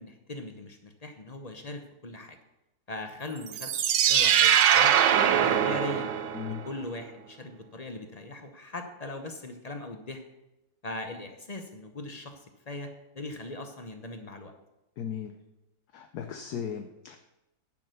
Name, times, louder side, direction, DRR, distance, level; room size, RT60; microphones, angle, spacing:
voice 1, 0.0-2.4 2.9-6.1 6.5-10.2 10.8-14.5, left 2 dB, 40° left, 6 dB, 0.6 m, -40 dB
sound 1, 3.5-6.6, right 9 dB, 80° right, 1.4 m, -22 dB
voice 2, 15.0-15.3 15.9-17.2, left 8 dB, 65° left, 6 dB, 1.2 m, -36 dB
10.5 x 6.0 x 6.6 m, 0.94 s
omnidirectional pair, 2.0 m